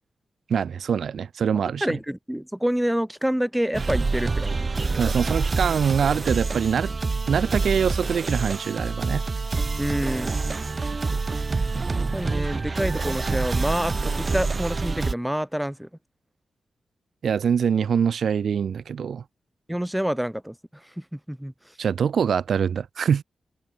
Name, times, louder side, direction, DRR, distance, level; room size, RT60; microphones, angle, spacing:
voice 1, 0.5-1.8 4.9-6.9 7.3-9.2 17.2-19.2 21.8-23.2, right 7 dB, 65° right, 1.2 m, -24 dB
voice 2, 1.8-5.0 9.8-10.8 11.1-11.2 11.9-15.9 19.7-21.8, equal, 5° right, 0.8 m, -28 dB
sound 1, 3.7-15.1, right 3 dB, 30° right, 0.3 m, -26 dB
wide cardioid pair, 145°, 0 cm